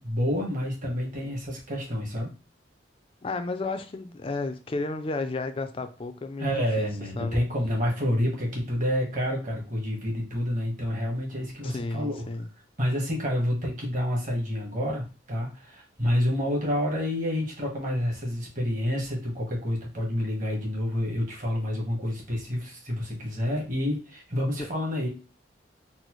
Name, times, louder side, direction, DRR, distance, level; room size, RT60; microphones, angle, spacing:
voice 1, 0.0-2.3 6.4-12.2 12.8-25.1, equal, 45° right, -1 dB, 1.3 m, -28 dB
voice 2, 3.2-6.9 7.2-7.4 11.6-12.5 24.6-24.7, left 3 dB, 30° left, 8 dB, 0.4 m, -32 dB
4.0 x 2.1 x 3.0 m, 0.32 s
head